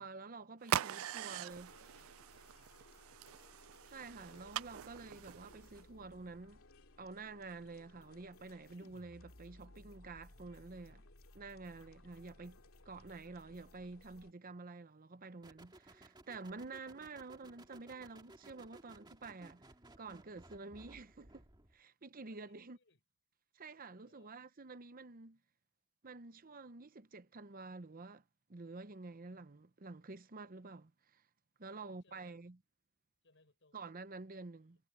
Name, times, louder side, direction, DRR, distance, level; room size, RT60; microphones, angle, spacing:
voice 1, 0.0-1.7 3.9-6.6 7.0-11.1 11.3-12.6 12.8-19.7 20.0-21.4 21.7-22.8 23.5-25.4 26.0-28.2 28.5-31.2 31.6-32.6 33.7-34.8, right 3 dB, 40° right, 0.8 m, -49 dB
sound 1, 0.6-5.8, right 11 dB, 70° right, 0.4 m, -42 dB
voice 2, 0.7-2.5 11.7-11.9 22.3-23.0 24.0-24.5 31.7-32.4 33.2-33.9 34.6-34.7, left 3 dB, 60° left, 6.5 m, -71 dB
sound 2, 1.5-14.3, left 2 dB, 85° left, 2.5 m, -61 dB
sound 3, 15.4-21.8, right 1 dB, 20° right, 2.0 m, -60 dB
head